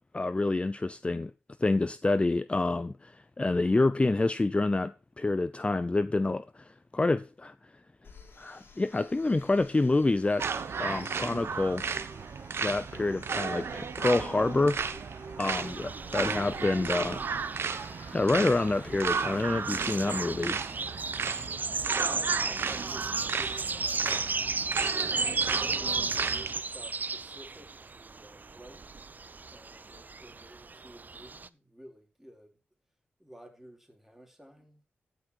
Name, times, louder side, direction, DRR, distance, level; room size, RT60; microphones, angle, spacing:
voice 1, 0.1-1.3 1.6-7.5 8.4-10.4 10.8-11.8 12.6-14.8 15.4-17.3 18.1-20.6, left 2 dB, 25° left, 0.5 m, -27 dB
sound 1, 8.0-19.4, left 4 dB, 60° left, 3.6 m, -54 dB
sound 2, 10.4-26.6, right 5 dB, 75° right, 1.1 m, -34 dB
sound 3, 15.5-31.5, right 4 dB, 45° right, 0.6 m, -35 dB
voice 2, 21.8-24.3 25.2-28.8 29.5-32.6 33.2-34.8, equal, 5° right, 3.8 m, -52 dB
15.0 x 6.1 x 4.8 m
cardioid pair, 60°, 4 cm